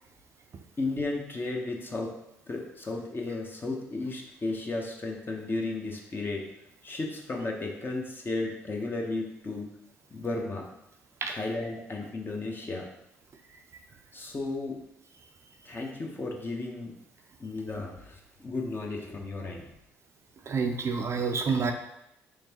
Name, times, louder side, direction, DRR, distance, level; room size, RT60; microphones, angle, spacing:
voice 1, 0.8-2.1 2.5-6.4 6.8-9.7 10.1-10.7 11.3-12.9 14.1-14.8 15.6-16.9 17.4-19.7, left 2 dB, 30° left, 0 dB, 1.0 m, -34 dB
voice 2, 20.5-21.7, right 5 dB, 40° right, 4 dB, 0.5 m, -28 dB
5.0 x 3.5 x 2.9 m, 0.84 s
hypercardioid pair, 50°, 7 cm